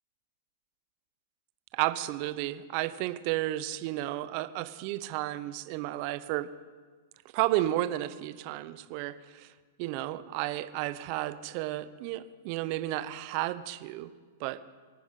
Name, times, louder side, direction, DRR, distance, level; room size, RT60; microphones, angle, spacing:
voice 1, 1.7-6.5 7.3-9.5 9.8-14.1 14.4-14.7, right 15 dB, 50° right, 14 dB, 0.9 m, -32 dB
25.0 x 10.0 x 5.6 m, 1.5 s
hypercardioid pair, 110°, 0 cm